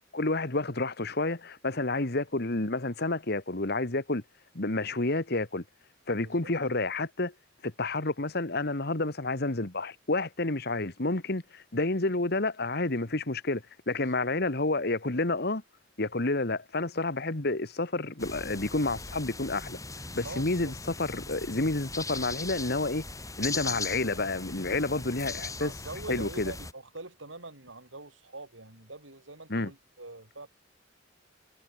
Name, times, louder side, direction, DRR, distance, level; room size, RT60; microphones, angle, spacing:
voice 1, 0.0-4.2 4.5-5.6 6.1-7.3 7.6-15.6 16.0-19.8 20.1-23.0 23.4-25.7 26.1-26.5 29.5-29.7, left 2 dB, 55° left, 1.9 m, -30 dB
sound 1, 18.2-26.7, left 3 dB, 15° left, 6.5 m, -39 dB
voice 2, 20.2-20.7 25.6-30.5, right 2 dB, 85° right, 5.5 m, -44 dB
head